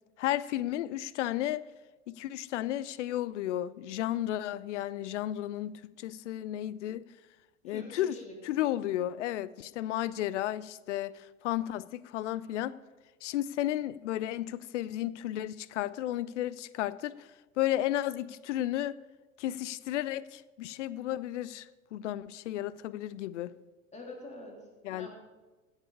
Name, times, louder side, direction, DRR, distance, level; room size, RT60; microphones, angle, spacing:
voice 1, 0.2-1.6 2.1-7.0 7.6-8.2 8.4-12.7 13.2-17.3 17.6-19.0 19.4-23.5 24.8-25.1, left 13 dB, 60° left, 19 dB, 0.5 m, -33 dB
voice 2, 7.6-8.4 23.9-25.1, left 2 dB, 15° left, 0 dB, 3.2 m, -46 dB
16.0 x 7.3 x 4.8 m, 1.2 s
figure-of-eight pair, 75°, 40 cm